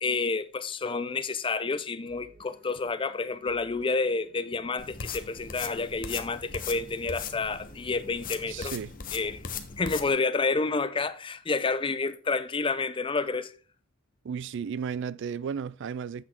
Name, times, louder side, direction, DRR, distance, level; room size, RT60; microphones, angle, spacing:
voice 1, 0.0-8.7 9.1-9.4 9.8-13.5, left 4 dB, 25° left, 0.5 m, -29 dB
sound 1, 2.1-8.8, right 2 dB, 40° right, 1.2 m, -57 dB
sound 2, 4.8-10.1, left 6 dB, 40° left, 1.0 m, -39 dB
voice 2, 8.5-8.9 14.2-16.2, right 6 dB, 60° right, 0.3 m, -34 dB
8.4 x 6.1 x 4.4 m
head